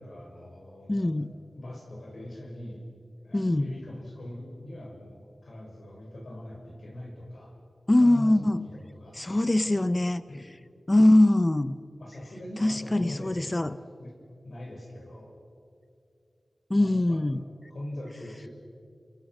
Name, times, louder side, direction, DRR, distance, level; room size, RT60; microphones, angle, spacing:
voice 1, 0.0-1.1 1.5-2.8 3.2-7.5 8.0-9.8 10.3-10.4 12.0-14.1 14.4-15.3 16.8-17.2 17.7-18.5, left 1 dB, 65° left, -1 dB, 6.3 m, -42 dB
voice 2, 0.9-1.3 3.3-3.7 7.9-8.7 9.2-10.2 10.9-11.7 12.6-13.8 16.7-17.4, left 1 dB, 25° left, 14 dB, 0.7 m, -22 dB
29.0 x 22.5 x 6.1 m, 2.4 s
wide cardioid pair, 65°, 0 cm